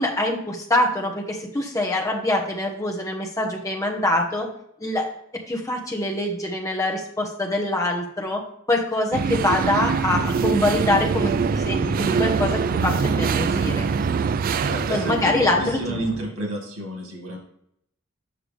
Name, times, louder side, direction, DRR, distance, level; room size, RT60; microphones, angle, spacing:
voice 1, 0.0-4.5 4.8-5.1 5.5-8.4 8.7-13.8 14.9-15.8, left 1 dB, 15° left, 0 dB, 1.1 m, -24 dB
sound 1, 9.1-16.2, right 5 dB, 45° right, 0.3 m, -24 dB
voice 2, 14.4-17.4, right 1 dB, 85° right, 1 dB, 2.0 m, -30 dB
6.5 x 5.9 x 3.4 m, 0.72 s
head